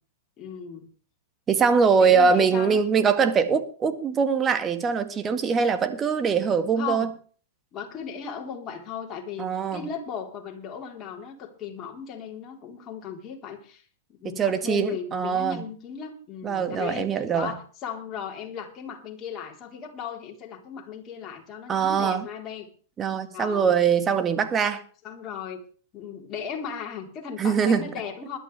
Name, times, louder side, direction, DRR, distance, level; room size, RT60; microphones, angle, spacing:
voice 1, 0.4-0.9 2.0-2.8 6.8-7.1 7.7-13.8 14.1-22.7 23.3-23.8 25.0-25.6 25.9-28.4, left 7 dB, 35° left, 0 dB, 4.0 m, -36 dB
voice 2, 1.5-7.1 9.4-9.8 14.2-15.6 16.4-17.5 21.7-22.3 23.0-24.8 27.4-27.9, right 6 dB, 25° right, 9 dB, 1.8 m, -22 dB
20.5 x 12.0 x 3.5 m, 0.40 s
hypercardioid pair, 105°, 0 cm